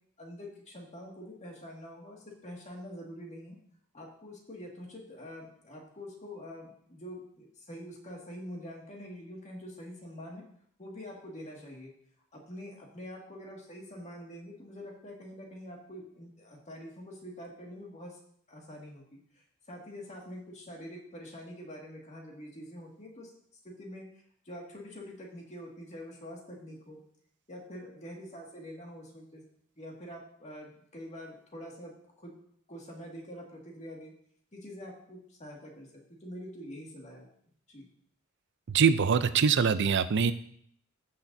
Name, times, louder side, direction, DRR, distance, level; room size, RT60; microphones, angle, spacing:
voice 1, 0.2-3.6 3.9-10.4 10.8-11.9 12.3-18.2 18.5-19.0 19.3-23.3 23.6-24.1 24.5-27.0 27.5-29.4 29.8-32.3 32.7-34.1 34.5-35.9 36.2-37.3 37.7-37.9, equal, 35° left, -1 dB, 2.1 m, -45 dB
voice 2, 38.7-40.3, right 6 dB, 55° right, 13 dB, 0.5 m, -24 dB
15.5 x 6.5 x 2.7 m, 0.64 s
head